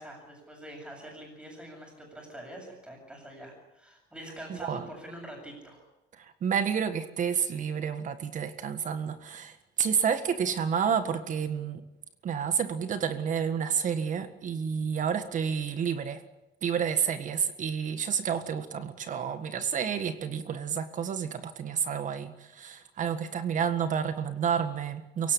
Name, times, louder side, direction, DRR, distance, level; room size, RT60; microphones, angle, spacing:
voice 1, 0.0-5.8, right 1 dB, 5° right, 1 dB, 7.6 m, -45 dB
voice 2, 6.4-11.8 12.2-16.2 16.6-25.3, right 7 dB, 45° right, 10 dB, 1.7 m, -30 dB
24.0 x 17.5 x 10.0 m, 0.94 s
cardioid pair, 150°, 19 cm